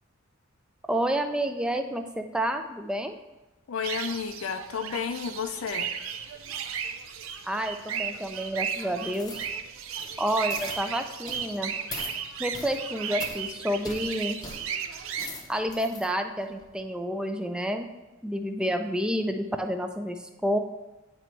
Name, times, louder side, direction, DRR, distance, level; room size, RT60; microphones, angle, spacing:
voice 1, 0.9-3.2 7.4-9.5 10.2-11.7 12.4-14.4 15.5-17.9 18.2-20.6, equal, 5° right, 6 dB, 0.4 m, -29 dB
voice 2, 3.7-5.9, left 6 dB, 80° left, 8 dB, 0.4 m, -32 dB
sound 1, 3.8-15.3, right 7 dB, 75° right, 0.5 m, -35 dB
sound 2, 9.1-9.5 9.9-10.2 10.5-10.8 11.3-11.5 11.9-12.1 12.5-12.8 13.2-13.4 13.8-14.0 14.4-14.6 15.0-16.1 16.5-16.6, left 2 dB, 20° left, 0.7 m, -40 dB
9.0 x 3.1 x 4.4 m, 1.1 s
head